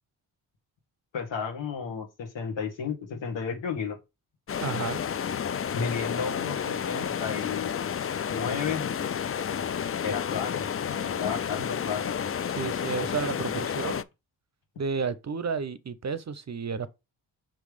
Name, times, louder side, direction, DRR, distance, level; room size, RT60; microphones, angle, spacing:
voice 1, 1.1-4.0 5.7-7.9 8.3-8.9 10.0-12.1, left 6 dB, 75° left, 1.9 m, -33 dB
sound 1, 4.5-14.0, left 8 dB, 30° left, 0.5 m, -31 dB
voice 2, 4.6-5.0 12.6-14.0 14.8-16.9, right 5 dB, 35° right, 0.7 m, -31 dB
5.8 x 3.2 x 5.2 m
supercardioid pair, 45°, 44 cm